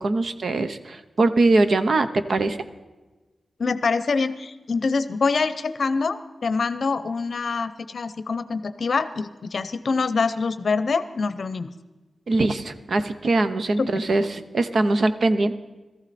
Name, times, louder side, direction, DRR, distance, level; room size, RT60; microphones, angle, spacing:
voice 1, 0.0-2.6 12.3-15.5, right 2 dB, 55° right, 10 dB, 0.7 m, -22 dB
voice 2, 3.6-11.7 13.8-13.9, left 4 dB, 55° left, 13 dB, 0.7 m, -25 dB
18.0 x 14.0 x 4.2 m, 1.2 s
wide cardioid pair, 155°, 0 cm